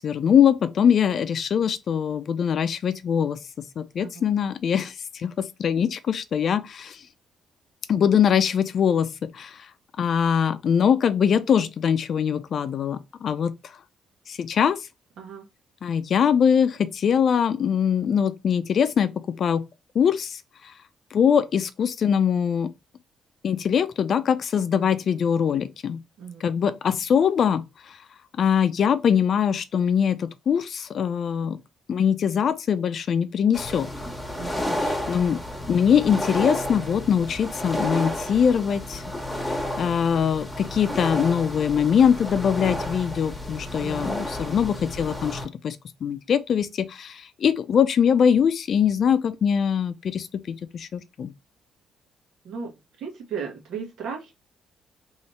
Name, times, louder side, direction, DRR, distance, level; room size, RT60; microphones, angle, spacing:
voice 1, 0.0-7.0 7.9-9.6 10.0-13.5 14.3-14.8 15.8-19.6 19.9-20.4 21.1-22.7 23.4-26.0 26.4-28.0 28.4-31.6 31.9-33.9 34.8-35.4 35.7-39.0 39.5-51.3, left 7 dB, 55° left, 0.4 m, -22 dB
sound 1, 33.5-45.5, left 1 dB, 5° left, 1.3 m, -31 dB
voice 2, 34.4-34.8 43.8-44.1 52.4-52.7 53.0-54.3, right 6 dB, 80° right, 1.4 m, -35 dB
3.1 x 2.8 x 3.2 m
cardioid pair, 90°, 0 cm